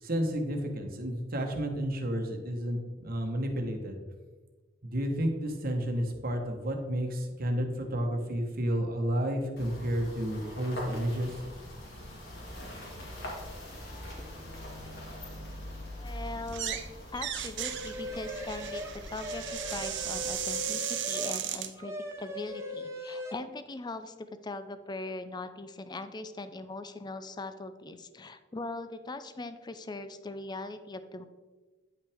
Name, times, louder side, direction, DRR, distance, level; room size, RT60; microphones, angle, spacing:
voice 1, 0.0-4.0 4.8-11.4, equal, 50° right, 4 dB, 1.1 m, -31 dB
sound 1, 9.6-20.3, equal, 55° left, 2.1 m, -43 dB
voice 2, 16.0-16.8 17.1-31.2, left 2 dB, 20° left, 11 dB, 0.5 m, -40 dB
sound 2, 16.4-16.9 17.1-21.7, right 11 dB, 65° right, 0.6 m, -36 dB
sound 3, 17.6-21.4 21.8-23.3, left 1 dB, 15° right, 0.8 m, -39 dB
9.3 x 5.7 x 3.5 m, 1.3 s
head